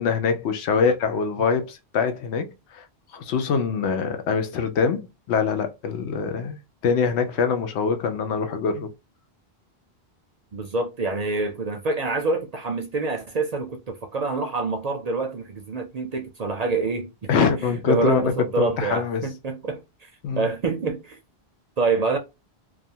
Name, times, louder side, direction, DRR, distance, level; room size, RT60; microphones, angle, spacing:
voice 1, 0.0-2.8 3.1-6.6 6.8-8.9 17.3-19.2 20.2-20.5, left 5 dB, 90° left, 0.9 m, -24 dB
voice 2, 10.5-20.1 20.3-21.2 21.8-22.2, right 3 dB, 55° right, 0.5 m, -26 dB
2.4 x 2.3 x 2.7 m
omnidirectional pair, 1.1 m